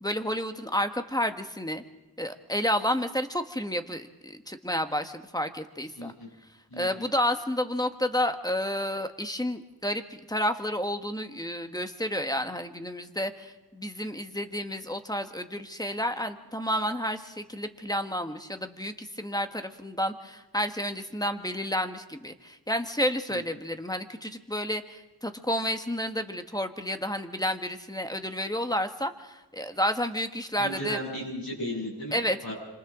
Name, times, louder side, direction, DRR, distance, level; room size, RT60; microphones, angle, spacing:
voice 1, 0.0-1.8 2.2-6.1 6.8-31.0 32.1-32.5, equal, 10° left, 7 dB, 1.4 m, -30 dB
voice 2, 6.0-6.3 6.7-7.1 23.3-23.4 30.6-32.5, equal, 65° left, -6 dB, 7.6 m, -36 dB
26.5 x 26.5 x 3.8 m, 1.0 s
wide cardioid pair, 45°, 38 cm